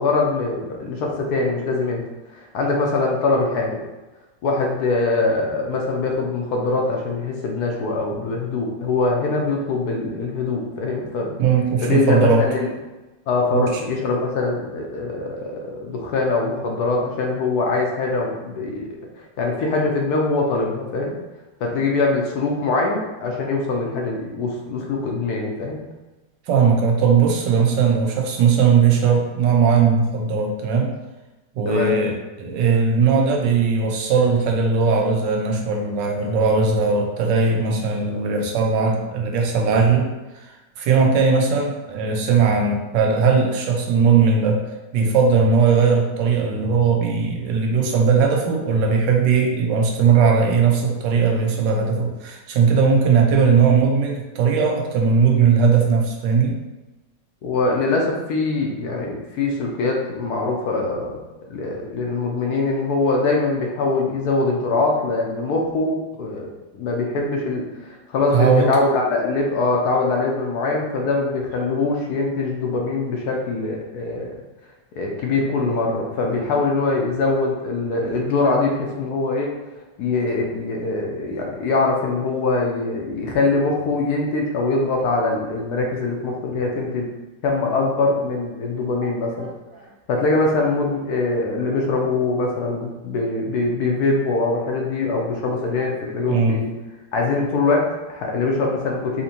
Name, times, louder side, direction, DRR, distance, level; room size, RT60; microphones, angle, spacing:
voice 1, 0.0-2.0 2.3-3.8 4.4-11.3 11.8-12.7 13.3-18.8 19.2-21.2 21.6-25.8 31.6-31.9 57.4-66.5 66.7-74.3 75.0-79.5 80.0-87.1 87.4-89.5 90.1-96.7 97.1-99.2, left 3 dB, 70° left, 0 dB, 1.1 m, -23 dB
voice 2, 11.4-12.4 13.5-13.8 26.5-30.9 31.6-40.1 40.3-40.5 40.8-44.6 44.9-56.6 68.3-68.7 89.0-89.1 95.8-95.9 96.3-96.6, right 5 dB, 80° right, 1 dB, 1.3 m, -18 dB
4.3 x 2.8 x 2.7 m, 1.1 s
omnidirectional pair, 1.9 m